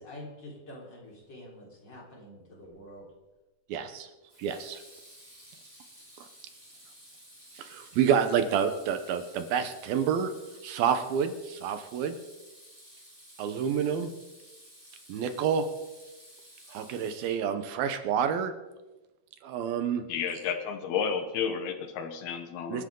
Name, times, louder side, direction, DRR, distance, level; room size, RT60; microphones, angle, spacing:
voice 1, 0.0-3.1, left 1 dB, 30° left, -3 dB, 4.5 m, -46 dB
Water tap faucet / Sink (filling or washing), 2.6-3.0 4.3-17.7, equal, 10° right, 6.5 m, -53 dB
voice 2, 3.7-4.1 4.4-4.8 7.6-10.3 10.6-12.2 13.4-14.1 15.1-15.6 16.7-18.5 19.4-20.0 22.7-22.8, right 7 dB, 75° right, 8 dB, 2.8 m, -28 dB
voice 3, 20.1-22.8, left 7 dB, 80° left, 7 dB, 3.1 m, -31 dB
27.0 x 11.5 x 3.8 m, 1.1 s
omnidirectional pair, 4.4 m